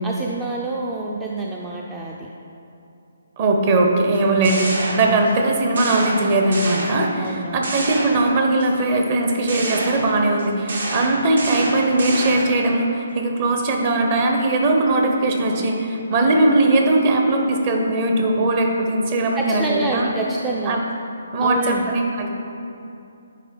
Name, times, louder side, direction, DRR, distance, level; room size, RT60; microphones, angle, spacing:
voice 1, 0.0-2.3 4.1-4.4 7.2-7.7 19.4-20.8 21.4-21.9, right 2 dB, 10° right, -2 dB, 0.4 m, -27 dB
voice 2, 3.4-20.1 20.7-20.8 21.3-22.3, right 2 dB, 35° right, 1 dB, 0.8 m, -19 dB
sound 1, 4.1-5.4 5.8-7.3 7.6-8.7 9.5-12.7, right 1 dB, 60° right, 1.0 m, -28 dB
9.2 x 3.4 x 4.5 m, 2.7 s
figure-of-eight pair, 140°, 0 cm